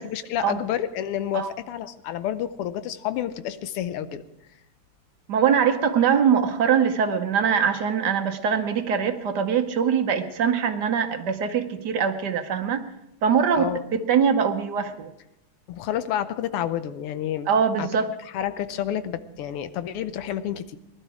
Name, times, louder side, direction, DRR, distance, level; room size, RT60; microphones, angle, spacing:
voice 1, 0.0-4.2 13.5-14.0 15.7-17.5 17.8-17.9 18.3-20.8, left 10 dB, 85° left, 12 dB, 1.7 m, -29 dB
voice 2, 5.3-12.8 13.2-15.1 17.5-18.1, right 7 dB, 60° right, 8 dB, 1.2 m, -22 dB
19.5 x 12.0 x 4.9 m, 0.87 s
omnidirectional pair, 2.4 m